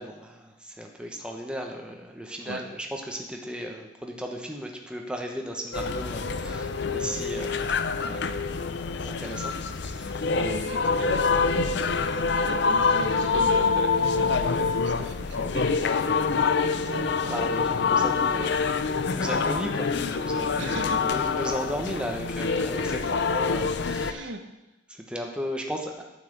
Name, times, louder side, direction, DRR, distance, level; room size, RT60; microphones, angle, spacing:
voice 1, 0.0-7.7 8.0-8.3 8.7-9.6 9.8-10.3 16.8-16.9 17.3-18.6 19.0-24.3 24.9-26.0, equal, 5° right, 1 dB, 1.1 m, -36 dB
sound 1, 5.7-24.1, left 4 dB, 60° left, 0.6 m, -26 dB
voice 2, 10.4-12.0 12.5-15.8 16.9-18.7 20.6-21.2 23.0-23.3 24.1-24.4, right 2 dB, 65° right, 6 dB, 0.9 m, -38 dB
9.4 x 5.8 x 7.9 m, 0.99 s
head